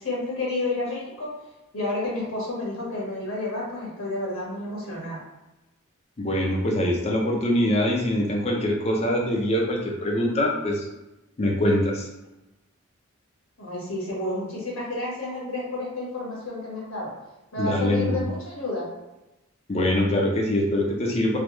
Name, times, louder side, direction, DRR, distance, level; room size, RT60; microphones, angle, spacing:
voice 1, 0.0-1.3 1.7-5.2 13.6-17.1 17.5-18.9, left 2 dB, 85° left, -6 dB, 1.4 m, -30 dB
voice 2, 6.2-10.8 11.4-12.1 17.6-18.3 19.7-21.4, left 1 dB, 30° left, -1 dB, 0.5 m, -23 dB
3.2 x 2.3 x 3.0 m, 1.0 s
head